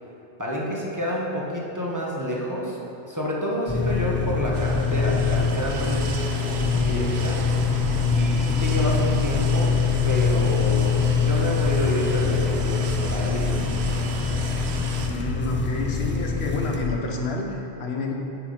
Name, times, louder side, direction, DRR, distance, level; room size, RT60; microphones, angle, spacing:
voice 1, 0.4-2.8 3.1-7.4 8.1-9.8 10.0-13.7, equal, 20° right, -4 dB, 1.1 m, -28 dB
sound 1, 3.7-16.9, left 5 dB, 15° left, 0.4 m, -24 dB
sound 2, 4.5-15.1, right 4 dB, 85° right, 1.0 m, -34 dB
voice 2, 15.1-18.1, left 2 dB, 80° left, 1 dB, 1.2 m, -29 dB
8.2 x 6.2 x 5.0 m, 2.9 s
omnidirectional pair, 1.1 m